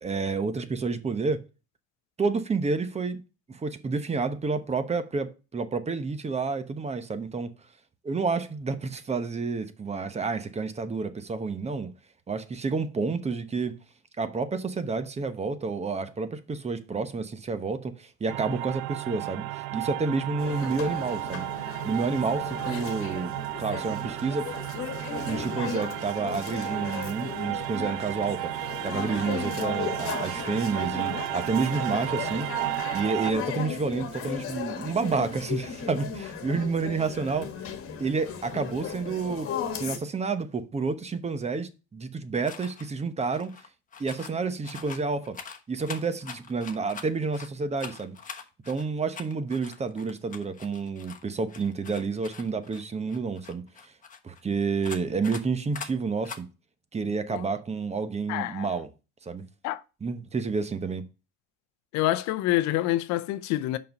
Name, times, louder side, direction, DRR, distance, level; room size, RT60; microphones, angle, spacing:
voice 1, 0.0-1.4 2.2-3.2 3.5-7.5 8.0-11.9 12.3-13.8 14.2-21.5 21.8-24.5 25.3-37.5 38.0-43.5 44.0-45.4 45.7-48.2 48.7-53.9 54.2-56.5 56.9-58.9 59.2-59.5 60.0-61.0, right 4 dB, 20° right, 1.0 m, -30 dB
sound 1, 18.3-33.3, right 18 dB, 85° right, 0.5 m, -33 dB
sound 2, 20.4-40.0, left 7 dB, 45° left, 1.5 m, -36 dB
sound 3, 42.4-42.9 43.2-44.4 44.6-47.5 47.8-51.2 51.5-54.4 54.8-55.4 55.7-55.9 56.2-56.4, left 6 dB, 25° left, 1.1 m, -43 dB
voice 2, 58.3-58.8 59.6-59.8 61.9-63.8, left 15 dB, 65° left, 0.7 m, -27 dB
5.7 x 5.4 x 5.2 m
supercardioid pair, 95°, 30 cm